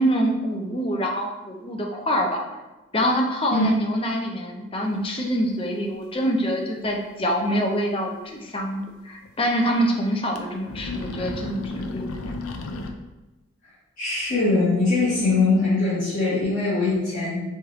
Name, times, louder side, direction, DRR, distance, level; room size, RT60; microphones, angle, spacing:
voice 1, 0.0-2.4 2.9-12.3, equal, 25° left, 1 dB, 0.6 m, -25 dB
sound 1, 6.8-6.9 7.2-7.3 8.8-8.9 9.2-9.3 10.2-10.4 10.7-12.9, left 2 dB, 85° left, 0.5 m, -33 dB
voice 2, 14.0-17.4, left 3 dB, 40° left, -11 dB, 1.4 m, -22 dB
4.4 x 3.3 x 3.6 m, 1.1 s
head